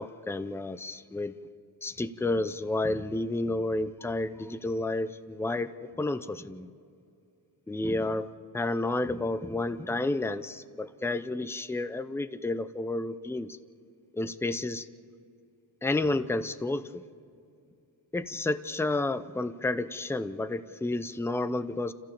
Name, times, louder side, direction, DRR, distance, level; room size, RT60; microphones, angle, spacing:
voice 1, 0.0-1.4 1.8-6.7 7.7-13.6 14.1-14.9 15.8-17.0 18.1-21.9, left 2 dB, 5° left, 12 dB, 0.6 m, -31 dB
28.5 x 15.0 x 7.0 m, 2.5 s
wide cardioid pair, 115°, 41 cm